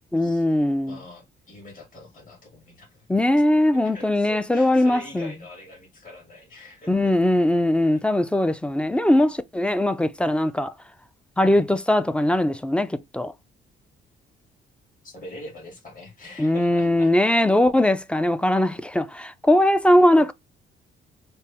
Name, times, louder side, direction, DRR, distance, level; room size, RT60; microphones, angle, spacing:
voice 1, 0.1-1.0 3.1-5.3 6.9-10.7 11.4-13.3 16.4-20.3, left 1 dB, 5° left, 0.4 m, -20 dB
voice 2, 0.9-3.2 3.8-7.1 11.4-11.6 15.0-17.6 19.9-20.0, left 1 dB, 45° left, 2.2 m, -43 dB
4.1 x 2.0 x 3.5 m
cardioid pair, 90°, 20 cm